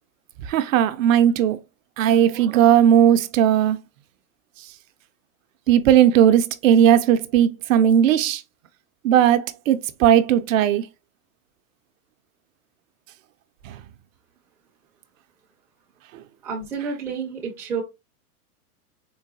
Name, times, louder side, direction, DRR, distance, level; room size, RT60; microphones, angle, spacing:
voice 1, 0.4-1.6 2.0-3.8 5.7-8.4 9.0-10.9 13.6-13.8, right 10 dB, 60° right, 0.5 m, -17 dB
voice 2, 16.4-17.8, right 5 dB, 5° right, 0.4 m, -29 dB
3.9 x 2.2 x 2.5 m
hypercardioid pair, 130°, 46 cm